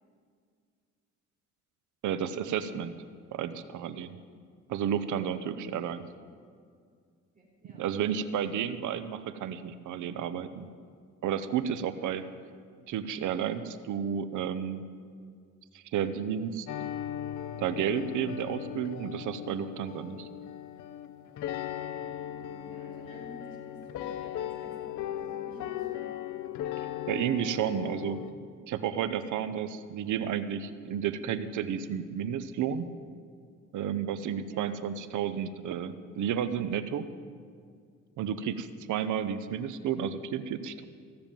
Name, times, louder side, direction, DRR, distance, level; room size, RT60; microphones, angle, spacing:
voice 1, 2.0-2.9 3.3-4.2 4.7-6.0 7.6-10.7 11.2-12.2 12.9-14.9 15.7-16.7 17.6-20.3 27.1-28.2 28.7-32.9 33.7-37.0 38.2-40.8, right 8 dB, 75° right, 12 dB, 0.8 m, -32 dB
voice 2, 7.3-7.8 22.2-26.2 34.4-34.8, right 1 dB, 25° right, -6 dB, 4.3 m, -52 dB
sound 1, 16.7-28.3, left 11 dB, 80° left, 0.7 m, -38 dB
15.5 x 6.9 x 9.1 m, 2.1 s
cardioid pair, 90°, 30 cm